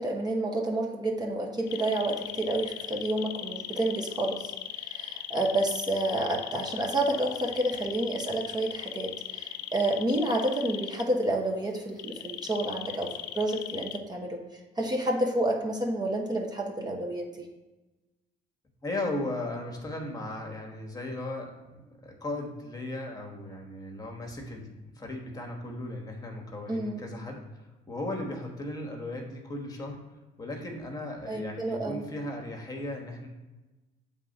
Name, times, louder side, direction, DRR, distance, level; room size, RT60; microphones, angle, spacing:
voice 1, 0.0-14.4 14.8-17.5 26.7-27.0 31.3-32.0, right 1 dB, 25° right, 0 dB, 1.0 m, -29 dB
sound 1, 1.7-11.0 12.0-14.0, left 12 dB, 80° left, 0.5 m, -38 dB
voice 2, 18.8-30.0 30.4-33.3, left 1 dB, 20° left, 1 dB, 1.3 m, -36 dB
7.3 x 3.7 x 5.3 m, 1.1 s
cardioid pair, 110°, 17 cm